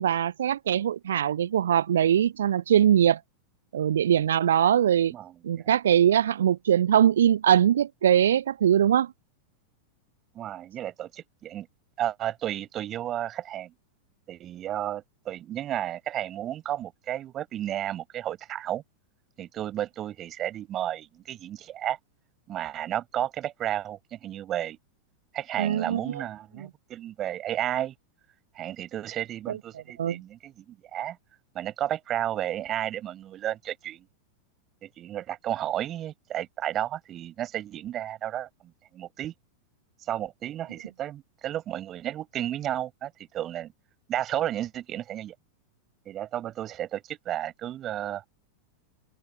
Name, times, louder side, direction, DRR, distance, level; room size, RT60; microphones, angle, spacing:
voice 1, 0.0-3.2 3.7-5.1 5.4-9.1 25.6-26.2 29.5-29.6 30.0-30.2, right 10 dB, 65° right, 0.3 m, -22 dB
voice 2, 5.1-5.7 10.3-11.7 12.0-13.7 14.3-18.8 19.4-22.0 22.5-24.8 25.3-27.9 28.5-31.2 31.5-34.1 34.8-39.3 40.1-43.7 44.1-45.3 46.1-48.3, right 12 dB, 30° right, 5.5 m, -32 dB
figure-of-eight pair, 90°, 0 cm